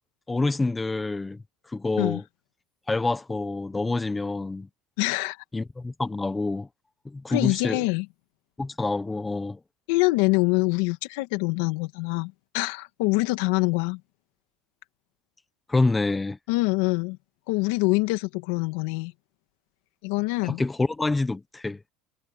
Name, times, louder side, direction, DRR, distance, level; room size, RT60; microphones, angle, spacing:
voice 1, 0.3-1.4 1.7-2.2 2.9-4.7 5.5-6.7 7.0-7.8 8.6-9.6 15.7-16.4 20.4-21.8, left 3 dB, 10° left, 1.2 m, -27 dB
voice 2, 5.0-5.4 7.3-8.1 9.9-14.0 16.5-17.2 17.5-19.1 20.0-20.6, left 24 dB, 80° left, 2.2 m, -25 dB
cardioid pair, 135°, 0 cm